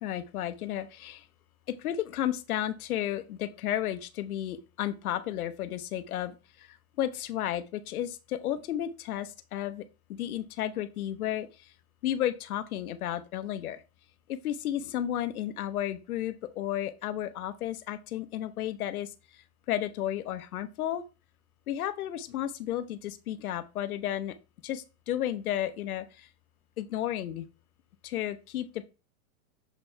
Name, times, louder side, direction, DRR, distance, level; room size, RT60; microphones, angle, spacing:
voice 1, 0.0-1.3 1.7-9.8 10.1-11.7 12.0-13.8 14.3-21.0 21.7-24.3 24.6-26.3 26.8-27.5 28.0-28.9, left 11 dB, 90° left, 12 dB, 1.0 m, -33 dB
7.0 x 4.5 x 3.3 m, 0.30 s
supercardioid pair, 145°, 42 cm